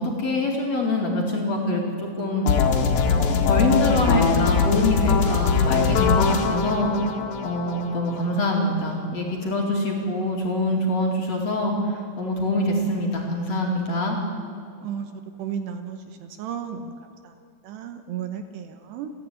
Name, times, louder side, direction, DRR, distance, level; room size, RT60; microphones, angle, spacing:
voice 1, 0.0-2.7 3.0-6.9 7.4-14.2, left 1 dB, 45° left, -1 dB, 2.9 m, -25 dB
sound 1, 2.5-8.4, left 5 dB, 60° left, 3.0 m, -22 dB
voice 2, 15.4-16.9 17.2-17.3 17.6-19.1, right 8 dB, 75° right, 7 dB, 2.9 m, -33 dB
29.0 x 11.5 x 9.4 m, 2.5 s
omnidirectional pair, 5.4 m